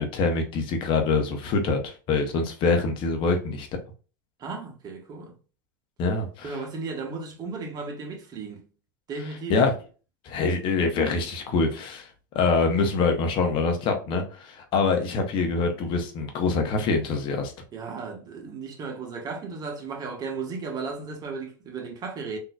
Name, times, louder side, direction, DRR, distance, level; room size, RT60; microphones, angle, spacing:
voice 1, 0.0-3.7 6.0-6.6 9.5-9.7 10.2-12.1 12.3-17.5, left 4 dB, 45° left, 0.9 m, -25 dB
voice 2, 4.4-5.3 6.4-8.6 9.1-9.6 17.7-22.4, right 4 dB, 35° right, 1.2 m, -35 dB
3.8 x 2.7 x 2.3 m
hypercardioid pair, 95°, 11 cm